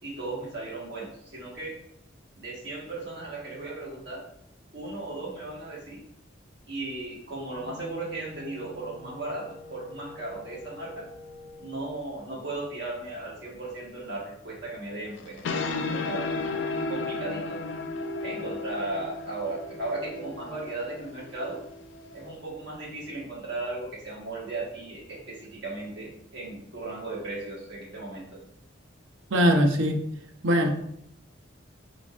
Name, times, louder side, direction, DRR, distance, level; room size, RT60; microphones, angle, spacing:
voice 1, 0.0-1.7 2.4-4.2 4.7-6.0 6.7-11.1 11.6-17.6 18.2-21.6 22.1-28.4, right 2 dB, 60° right, -5 dB, 1.5 m, -36 dB
Wind instrument woodwind instrument, 7.4-11.9, left 2 dB, 40° right, 1.0 m, -46 dB
sound 1, 15.2-22.3, left 3 dB, 70° left, 0.4 m, -34 dB
voice 2, 29.3-30.0 30.4-30.7, equal, 75° right, 4 dB, 0.6 m, -21 dB
4.2 x 3.8 x 2.4 m, 0.72 s
head